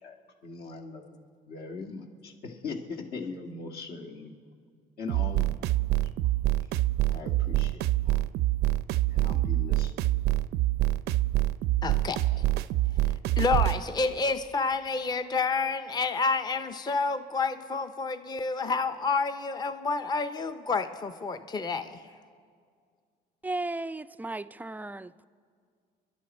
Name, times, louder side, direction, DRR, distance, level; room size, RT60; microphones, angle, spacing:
voice 1, 0.4-4.3 5.0-5.7 6.0-6.1 7.1-8.2 9.1-9.9, left 4 dB, 70° left, 1.8 m, -40 dB
sound 1, 5.1-13.8, right 15 dB, 80° right, 0.4 m, -26 dB
voice 2, 11.8-12.5 13.4-22.2, left 4 dB, 25° left, 0.6 m, -29 dB
voice 3, 23.4-25.3, right 2 dB, 10° right, 0.3 m, -35 dB
29.0 x 11.5 x 4.3 m
cardioid pair, 110°, 17 cm